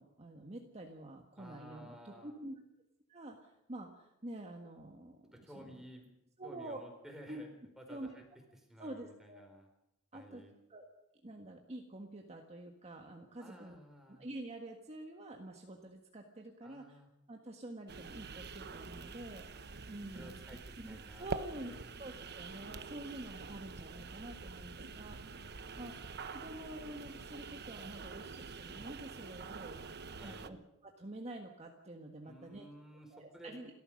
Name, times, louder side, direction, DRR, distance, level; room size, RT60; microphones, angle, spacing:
voice 1, 0.0-2.6 3.1-5.7 6.4-6.8 7.3-7.4 7.9-8.1 8.8-9.4 10.1-10.4 10.7-10.8 11.2-13.8 14.1-17.0 17.3-20.4 20.8-25.4 25.8-26.0 26.3-29.8 30.2-30.6 30.8-32.6 33.1-33.7, right 1 dB, 30° right, 2 dB, 1.6 m, -48 dB
voice 2, 1.4-2.3 5.3-6.1 6.4-7.5 7.8-8.2 8.6-9.7 10.1-10.5 13.4-14.2 16.6-17.1 20.1-22.0 25.0-26.0 30.2-30.6 32.2-33.5, equal, ahead, 2 dB, 4.3 m, -54 dB
sound 1, 17.9-30.5, right 4 dB, 50° right, 1.0 m, -46 dB
29.5 x 13.5 x 6.5 m, 0.85 s
head